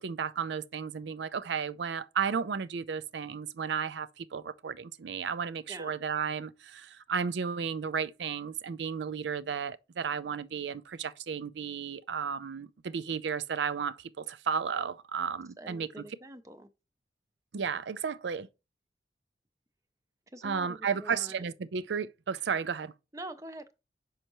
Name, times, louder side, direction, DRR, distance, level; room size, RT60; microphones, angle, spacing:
voice 1, 0.0-16.0 17.5-18.5 20.4-22.9, right 6 dB, 80° right, 0.4 m, -33 dB
voice 2, 15.6-16.7 20.3-21.5 23.1-23.7, right 1 dB, 20° right, 0.5 m, -45 dB
6.4 x 5.5 x 3.0 m
head